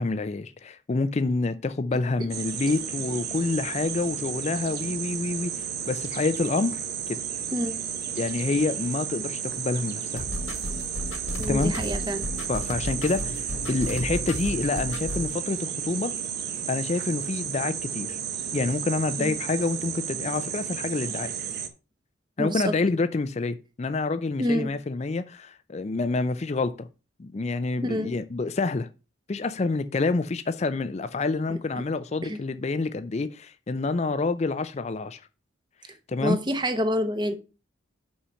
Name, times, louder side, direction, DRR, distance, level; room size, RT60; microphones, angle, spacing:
voice 1, 0.0-6.8 8.1-10.2 11.5-11.7 12.5-13.4 13.7-16.1 16.7-18.2 18.5-21.3 22.4-26.9 27.2-28.9 29.3-35.2 36.1-36.4, left 3 dB, 35° left, 0.4 m, -27 dB
sound 1, 2.3-21.7, right 8 dB, 50° right, 0.9 m, -33 dB
sound 2, 10.2-15.2, left 1 dB, 80° left, 1.6 m, -34 dB
voice 2, 11.4-12.2 19.2-19.3 22.4-22.7 24.4-24.7 27.9-28.1 31.5-31.6 32.2-32.4 36.2-37.4, equal, 20° right, 0.9 m, -27 dB
5.7 x 5.6 x 5.6 m
head